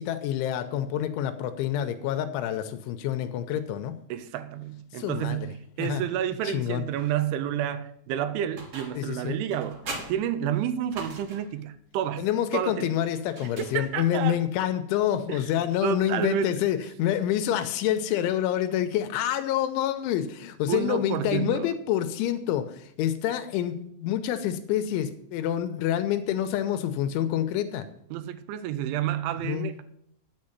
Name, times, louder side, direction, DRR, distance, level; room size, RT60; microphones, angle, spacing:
voice 1, 0.0-4.0 5.0-5.5 5.8-6.0 6.5-6.8 9.0-9.4 12.2-27.9 29.4-29.7, left 11 dB, 85° left, 3.1 m, -27 dB
voice 2, 4.1-9.8 10.1-12.3 12.5-13.0 13.6-14.4 15.3-15.4 15.8-16.6 20.7-21.7 28.1-29.8, right 10 dB, 80° right, 3.0 m, -30 dB
sound 1, 8.6-9.1 9.5-11.6 13.3-14.2, right 2 dB, 40° right, 2.4 m, -41 dB
10.5 x 6.5 x 7.3 m
omnidirectional pair, 5.5 m